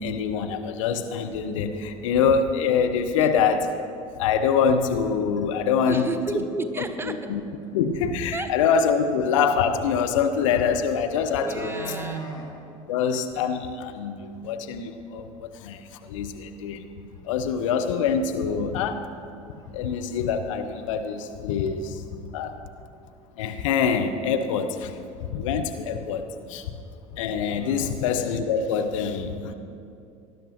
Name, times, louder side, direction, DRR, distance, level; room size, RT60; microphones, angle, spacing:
voice 1, 0.0-3.7 4.2-6.0 7.0-7.4 7.7-11.8 12.9-16.9 17.2-19.1 19.7-22.0 22.3-22.6 23.4-24.9 25.3-26.6 27.1-29.5, left 6 dB, 65° left, 7 dB, 0.8 m, -25 dB
sound 1, 2.1-2.2 2.7-2.8 3.1-3.2 4.1-4.2 4.8-5.1 5.4-5.5 5.8-6.2 7.6-7.7 8.0-8.1 10.4-10.5 10.8-12.5 12.9-13.0 13.3-13.4 13.8-13.9 14.3-14.4 17.2-17.3 17.6-17.7 18.5-18.6 19.0-19.3 19.5-20.3 20.6-20.7, right 3 dB, 20° left, 2.0 m, -40 dB
voice 2, 5.9-7.2 8.3-8.5 11.4-12.3 27.5-28.0, right 3 dB, 15° right, 7 dB, 0.9 m, -32 dB
19.5 x 11.5 x 3.0 m, 2.5 s
figure-of-eight pair, 70°, 18 cm